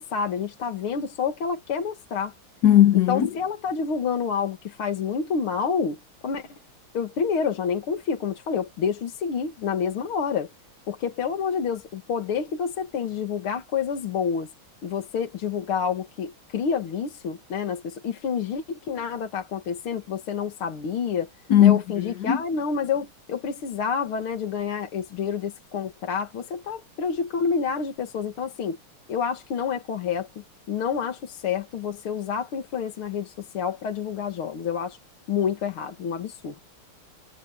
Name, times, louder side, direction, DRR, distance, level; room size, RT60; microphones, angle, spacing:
voice 1, 0.0-2.3 3.1-6.5 6.9-10.5 10.9-14.5 14.8-21.3 21.6-28.8 29.1-30.3 30.7-35.0 35.3-36.6, left 6 dB, 75° left, 2.6 m, -28 dB
voice 2, 2.6-3.3 21.5-22.4, left 11 dB, 55° left, 1.2 m, -17 dB
omnidirectional pair, 2.4 m